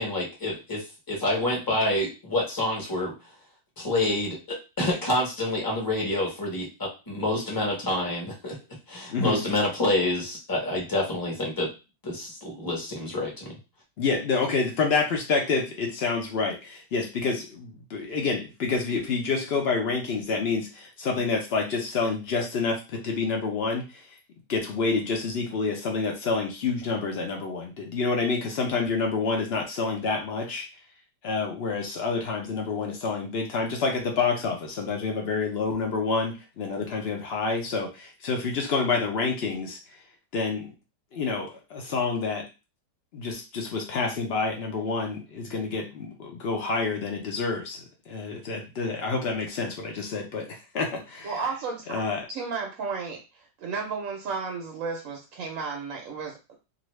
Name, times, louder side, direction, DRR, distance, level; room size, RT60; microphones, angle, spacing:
voice 1, 0.0-3.1 3.8-8.5 8.9-11.7 12.0-13.5, left 1 dB, 15° left, -2 dB, 0.8 m, -27 dB
voice 2, 9.1-9.4 14.0-24.2 24.5-30.7 31.2-40.0 40.3-40.7 41.1-42.4 43.1-51.4 51.9-52.2, left 4 dB, 75° left, 1 dB, 0.5 m, -28 dB
voice 3, 51.2-52.0 52.3-53.2 53.6-56.6, right 5 dB, 65° right, 1 dB, 0.8 m, -33 dB
2.6 x 2.5 x 3.1 m, 0.29 s
omnidirectional pair, 1.9 m